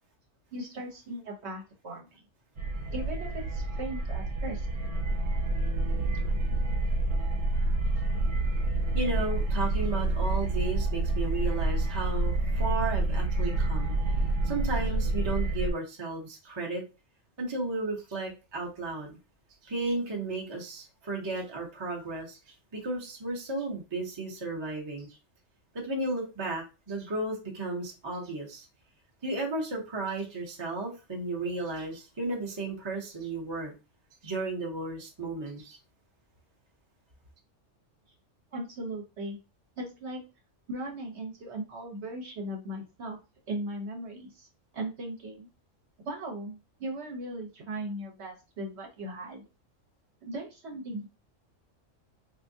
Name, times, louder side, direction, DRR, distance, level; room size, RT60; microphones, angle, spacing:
voice 1, 0.5-2.2 2.9-4.7 38.5-39.4 39.8-40.2 40.7-43.2 43.5-44.5 44.7-45.5 46.0-49.4 50.2-51.1, right 1 dB, 60° right, 1.1 m, -38 dB
sound 1, 2.6-15.7, right 2 dB, 85° right, 1.1 m, -28 dB
voice 2, 8.9-13.9 14.4-16.8 17.4-19.2 19.6-25.1 25.7-28.7 29.2-33.7 34.2-35.8, right 2 dB, 25° right, 0.7 m, -34 dB
3.4 x 2.7 x 2.7 m
omnidirectional pair, 1.3 m